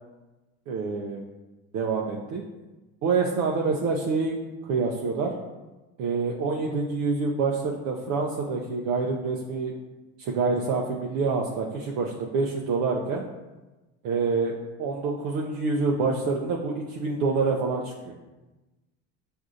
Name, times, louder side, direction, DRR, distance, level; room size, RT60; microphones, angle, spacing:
voice 1, 0.7-1.2 1.7-2.4 3.0-5.3 6.0-9.7 10.2-13.2 14.0-14.5 14.8-18.1, right 4 dB, 70° right, -1 dB, 0.6 m, -27 dB
6.3 x 2.6 x 2.4 m, 1.1 s
cardioid pair, 115°, 32 cm